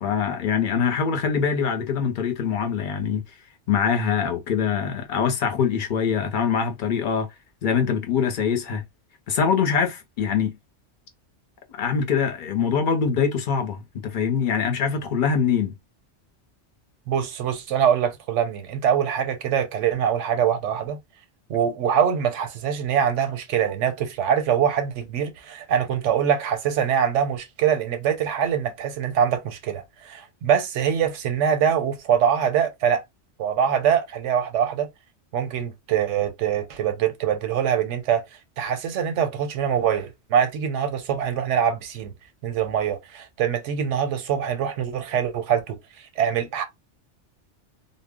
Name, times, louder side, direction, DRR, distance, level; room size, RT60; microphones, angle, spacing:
voice 1, 0.0-3.2 3.7-7.3 7.6-8.8 9.3-10.6 11.7-15.7, left 6 dB, 55° left, 0.7 m, -23 dB
voice 2, 17.1-21.0 21.5-33.0 33.4-34.9 35.3-38.2 38.6-42.1 42.4-46.6, right 8 dB, 85° right, 0.9 m, -24 dB
2.1 x 2.0 x 3.5 m
omnidirectional pair, 1.2 m